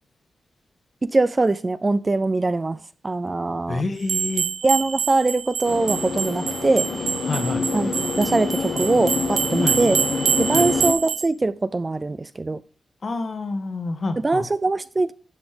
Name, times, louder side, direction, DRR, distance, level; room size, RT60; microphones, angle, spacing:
voice 1, 1.0-3.8 4.6-6.9 7.7-10.0 10.4-12.6 14.2-15.1, right 2 dB, 25° right, 0.3 m, -22 dB
voice 2, 3.7-4.5 7.3-7.7 9.6-9.8 10.5-10.7 13.0-14.4, left 3 dB, 45° left, 1.5 m, -28 dB
sound 1, 4.0-11.3, right 7 dB, 85° right, 0.8 m, -26 dB
sound 2, 5.6-10.9, left 4 dB, 70° left, 1.4 m, -26 dB
12.0 x 4.2 x 5.1 m
cardioid pair, 95°, 0 cm